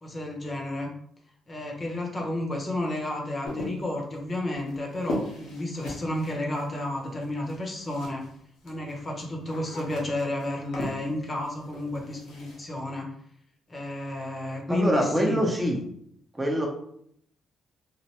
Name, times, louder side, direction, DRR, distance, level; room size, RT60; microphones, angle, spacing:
voice 1, 0.0-0.9 1.5-8.2 8.6-13.1 13.7-15.4, left 1 dB, 30° left, 0 dB, 0.8 m, -31 dB
sound 1, 3.4-8.4 8.6-12.6, left 1 dB, 85° left, 0.8 m, -39 dB
voice 2, 14.7-15.8 16.4-16.7, equal, 15° right, 0 dB, 0.7 m, -24 dB
3.1 x 2.1 x 2.9 m, 0.68 s
cardioid pair, 90°, 0 cm